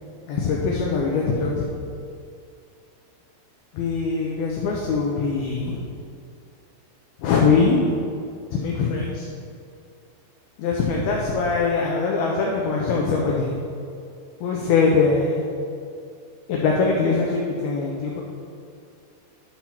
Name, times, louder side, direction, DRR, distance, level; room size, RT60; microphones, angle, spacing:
voice 1, 0.3-1.7 3.7-5.8 7.2-7.9 8.5-9.3 10.6-13.5 14.4-15.4 16.5-18.2, left 4 dB, 75° left, -2 dB, 2.4 m, -22 dB
10.5 x 4.3 x 5.9 m, 2.4 s
omnidirectional pair, 4.9 m